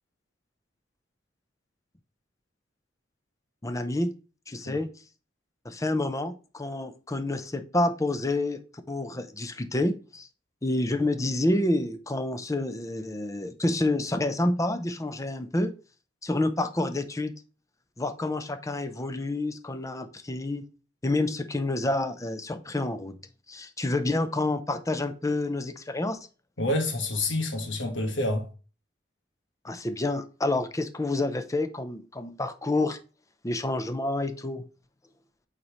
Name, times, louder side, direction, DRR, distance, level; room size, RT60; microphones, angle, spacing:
voice 1, 3.6-4.1 4.5-4.9 5.6-8.6 8.9-10.3 10.6-15.7 16.2-17.3 18.0-20.7 21.0-23.2 23.5-26.2 29.6-33.0 33.4-34.6, left 2 dB, 15° left, 0.7 m, -28 dB
voice 2, 26.6-28.5, left 1 dB, 85° left, 1.6 m, -28 dB
8.3 x 4.1 x 3.1 m
head